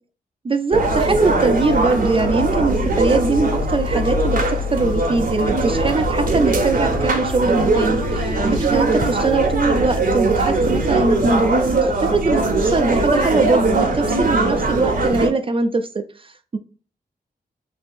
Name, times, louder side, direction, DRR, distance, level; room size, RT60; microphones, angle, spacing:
voice 1, 0.4-16.6, right 3 dB, 35° right, 8 dB, 0.4 m, -22 dB
sound 1, 0.7-15.3, right 2 dB, 55° right, 0.7 m, -20 dB
2.8 x 2.6 x 3.4 m, 0.40 s
cardioid pair, 75°, 17 cm